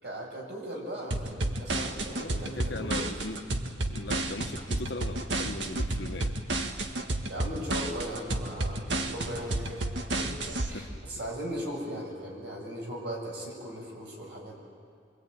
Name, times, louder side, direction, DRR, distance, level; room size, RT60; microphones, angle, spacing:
voice 1, 0.0-3.3 7.3-9.8 10.2-10.3 10.6-14.6, equal, 65° right, 6.9 m, -38 dB
sound 1, 1.1-10.7, right 2 dB, 85° right, 1.8 m, -31 dB
voice 2, 2.1-3.6 3.9-6.4 10.7-10.9, left 2 dB, 75° left, 1.4 m, -39 dB
25.0 x 25.0 x 9.3 m
head